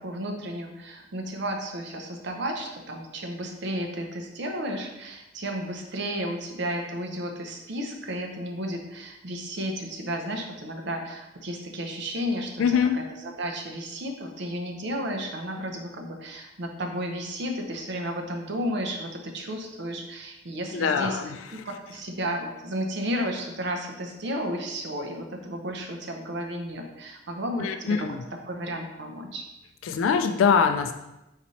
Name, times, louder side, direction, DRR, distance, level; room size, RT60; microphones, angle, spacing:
voice 1, 0.0-12.7 13.2-21.2 21.5-28.2 28.5-29.5, equal, 60° right, 3 dB, 0.7 m, -33 dB
voice 2, 12.6-13.0 20.7-21.6 27.6-28.2 29.8-30.9, left 6 dB, 85° left, 8 dB, 0.3 m, -23 dB
4.1 x 4.0 x 3.1 m, 0.95 s
head